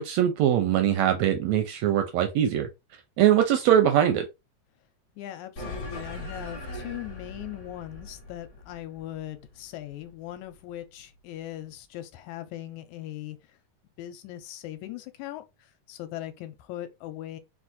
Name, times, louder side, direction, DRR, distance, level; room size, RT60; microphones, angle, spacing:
voice 1, 0.0-2.7 3.2-4.2, right 10 dB, 80° right, 1.6 m, -22 dB
voice 2, 5.2-13.4 14.0-15.4 15.9-17.4, left 13 dB, 80° left, 1.9 m, -39 dB
sound 1, 5.6-10.3, left 1 dB, 40° left, 1.5 m, -40 dB
4.7 x 2.4 x 4.0 m
omnidirectional pair, 3.5 m